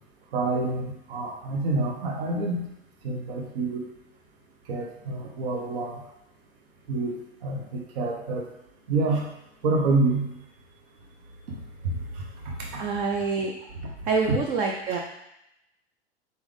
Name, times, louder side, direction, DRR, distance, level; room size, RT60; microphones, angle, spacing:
voice 1, 0.3-2.7 3.0-3.8 4.7-6.0 6.9-8.4 8.9-9.3 9.6-10.3 11.8-12.8 14.3-14.4, right 3 dB, 55° right, 0 dB, 1.0 m, -27 dB
voice 2, 12.8-13.5 14.0-15.0, right 4 dB, 25° right, 1 dB, 0.4 m, -26 dB
4.1 x 3.5 x 3.5 m, 0.84 s
figure-of-eight pair, 95°, 33 cm